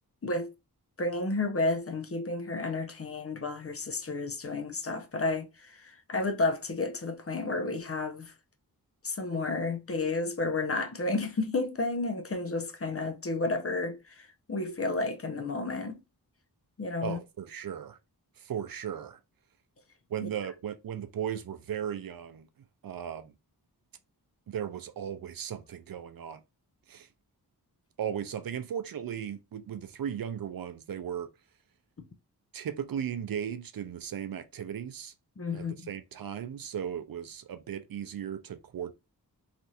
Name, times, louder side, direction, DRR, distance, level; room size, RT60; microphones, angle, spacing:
voice 1, 1.0-8.3 9.0-16.0 16.8-17.2 20.2-20.3 35.4-35.9, left 3 dB, 35° left, 0.7 m, -31 dB
voice 2, 17.0-18.0 18.4-19.2 20.1-22.5 22.8-23.3 24.5-26.4 26.9-27.1 28.0-31.3 32.5-35.1 35.5-38.9, right 9 dB, 60° right, 0.5 m, -36 dB
3.3 x 2.6 x 2.3 m
cardioid pair, 55°, 39 cm